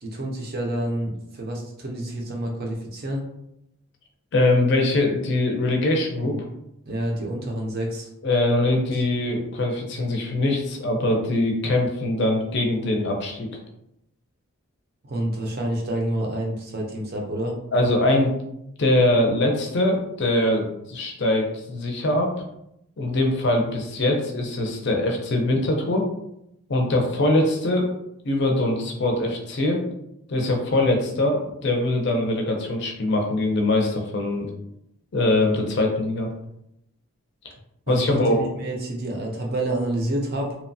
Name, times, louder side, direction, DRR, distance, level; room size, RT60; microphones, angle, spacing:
voice 1, 0.0-3.2 6.2-6.4 6.9-8.1 8.9-9.0 15.0-17.6 37.9-40.6, right 1 dB, 45° right, 0 dB, 0.5 m, -28 dB
voice 2, 4.3-6.4 8.2-13.5 17.7-18.3 18.8-22.3 23.0-26.0 26.7-27.9 28.2-29.8 30.3-34.5 35.1-36.3 37.9-38.4, left 1 dB, 50° left, 2 dB, 0.5 m, -22 dB
2.8 x 2.2 x 2.6 m, 0.80 s
head